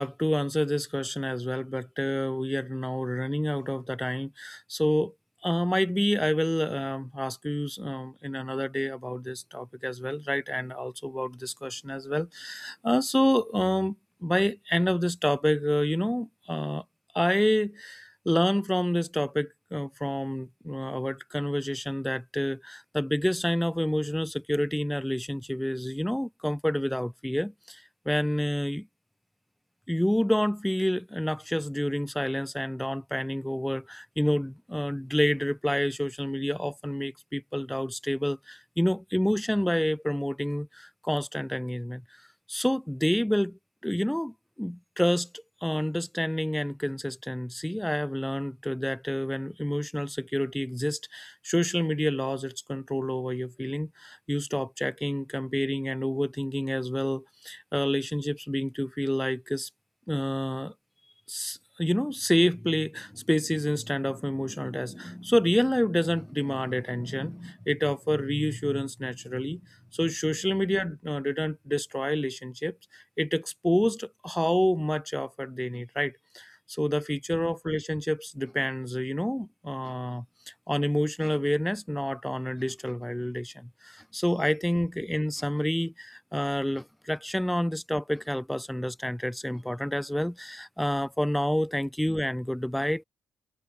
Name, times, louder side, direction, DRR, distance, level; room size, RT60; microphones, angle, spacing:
voice 1, 0.0-5.1 5.4-14.0 14.2-16.8 17.1-28.9 29.9-42.0 42.5-45.3 45.6-59.7 60.1-60.7 61.3-69.6 69.9-80.3 80.7-93.0, equal, 5° left, 0.4 m, -28 dB
open air
cardioid pair, 90°, 0 cm